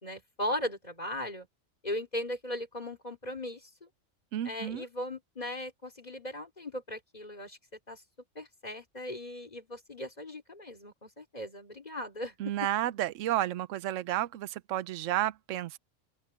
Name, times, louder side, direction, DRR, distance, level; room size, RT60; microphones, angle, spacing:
voice 1, 0.0-1.5 1.8-3.7 4.4-7.6 7.9-8.0 8.4-12.7, left 1 dB, 30° left, 3.8 m, -38 dB
voice 2, 4.3-4.9 12.4-15.8, right 13 dB, 80° right, 1.0 m, -31 dB
open air
omnidirectional pair, 1.3 m